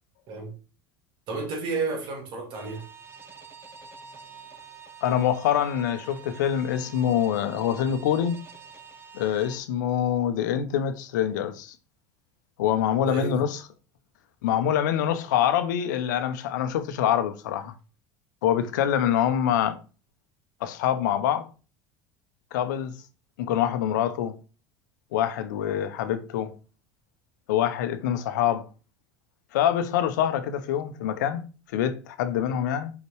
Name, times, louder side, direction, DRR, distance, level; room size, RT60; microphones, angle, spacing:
voice 1, 1.3-2.8 13.0-13.5, right 3 dB, 55° right, 2.7 m, -31 dB
sound 1, 2.5-9.6, right 5 dB, 25° right, 1.4 m, -47 dB
voice 2, 5.0-8.4 9.1-11.7 12.6-13.6 14.4-17.7 18.4-19.8 20.6-21.5 22.5-23.0 23.4-24.3 25.1-26.5 27.5-28.6 29.5-31.4 31.7-32.9, left 10 dB, 75° left, 0.9 m, -25 dB
5.4 x 4.9 x 4.7 m
hypercardioid pair, 75°, 10 cm